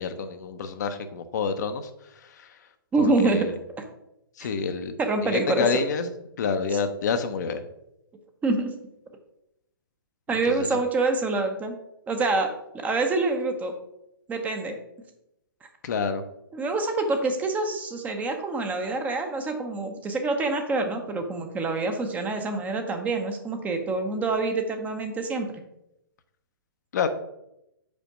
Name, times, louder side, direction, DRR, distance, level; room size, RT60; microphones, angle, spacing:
voice 1, 0.0-1.9 3.0-3.5 4.4-5.0 5.2-6.1 6.4-7.6 10.6-10.7 15.8-16.2 26.9-27.1, left 5 dB, 50° left, 8 dB, 0.6 m, -27 dB
voice 2, 2.9-3.5 4.4-4.5 5.0-5.8 6.7-6.8 8.4-8.7 10.3-11.8 12.1-13.7 14.3-14.8 16.5-25.5, right 3 dB, 10° right, 6 dB, 0.7 m, -26 dB
5.2 x 4.3 x 6.0 m, 0.84 s
figure-of-eight pair, 125°, 12 cm